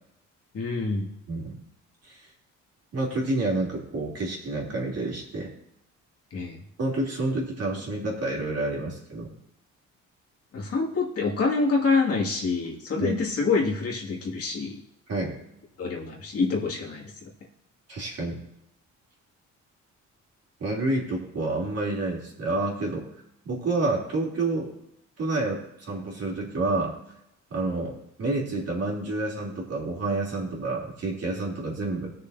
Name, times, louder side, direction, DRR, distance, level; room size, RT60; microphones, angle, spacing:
voice 1, 0.5-1.1 6.3-6.6 10.5-14.8 15.8-17.2, left 4 dB, 50° left, -2 dB, 2.2 m, -26 dB
voice 2, 1.3-1.6 2.0-2.3 2.9-5.5 6.8-9.3 13.0-13.2 15.1-15.4 17.9-18.4 20.6-23.1 23.4-24.7 25.2-27.0 27.5-32.1, right 2 dB, 55° right, -3 dB, 3.1 m, -29 dB
17.5 x 6.7 x 2.7 m, 0.80 s
cardioid pair, 90°, 30 cm